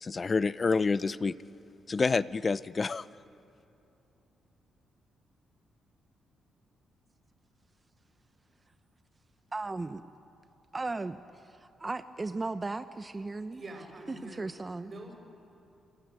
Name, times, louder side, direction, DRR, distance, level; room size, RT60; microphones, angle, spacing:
voice 1, 0.0-1.3 1.9-3.0, left 4 dB, 35° left, 0.6 m, -28 dB
voice 2, 9.5-10.0 10.7-11.2 11.5-13.6 14.4-14.9, right 3 dB, 25° right, 0.8 m, -36 dB
voice 3, 13.5-15.2, right 1 dB, 40° right, 6.1 m, -46 dB
28.0 x 20.0 x 9.2 m
cardioid pair, 80°, 0 cm